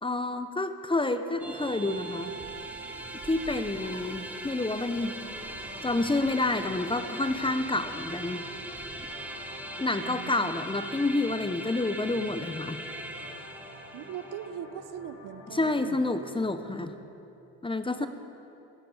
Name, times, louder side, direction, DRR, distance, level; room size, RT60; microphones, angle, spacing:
voice 1, 0.0-2.3 3.2-5.1 5.8-8.4 9.8-12.8 15.5-16.9 17.6-18.1, left 2 dB, 15° left, 9 dB, 1.0 m, -29 dB
sound 1, 1.4-14.5, right 1 dB, 5° right, 1.9 m, -41 dB
sound 2, 1.9-9.1, right 2 dB, 30° right, 2.4 m, -49 dB
sound 3, 5.0-16.9, left 1 dB, 45° left, 3.3 m, -49 dB
voice 2, 10.1-10.6 13.9-16.0 18.0-18.1, right 9 dB, 60° right, 12 dB, 0.8 m, -40 dB
15.5 x 13.5 x 5.0 m, 2.8 s
supercardioid pair, 70°, 36 cm